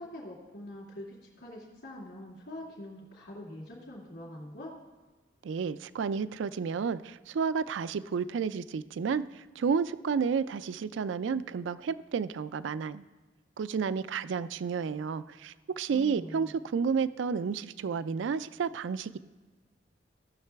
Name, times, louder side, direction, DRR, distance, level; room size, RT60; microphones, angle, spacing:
voice 1, 0.0-4.8 15.9-16.5, left 1 dB, 65° left, -8 dB, 2.4 m, -44 dB
voice 2, 5.4-13.0 13.6-19.2, right 6 dB, 80° right, 15 dB, 0.4 m, -31 dB
17.0 x 6.6 x 3.4 m, 1.2 s
head